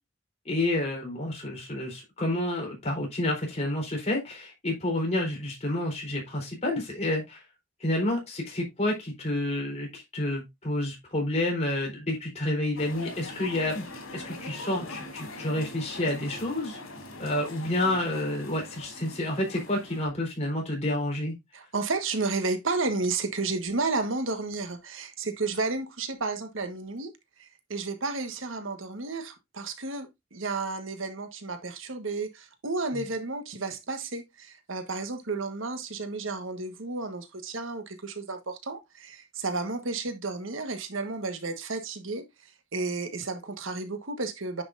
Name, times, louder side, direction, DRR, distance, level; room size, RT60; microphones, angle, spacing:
voice 1, 0.5-7.4 7.8-13.8 14.1-16.8 17.2-21.3, left 1 dB, 35° left, 4.0 m, -29 dB
sound 1, 12.8-20.1, left 2 dB, 90° left, 3.0 m, -42 dB
voice 2, 21.5-27.1 27.4-42.2 42.7-44.6, right 3 dB, 70° right, 1.4 m, -32 dB
9.8 x 6.2 x 2.6 m
head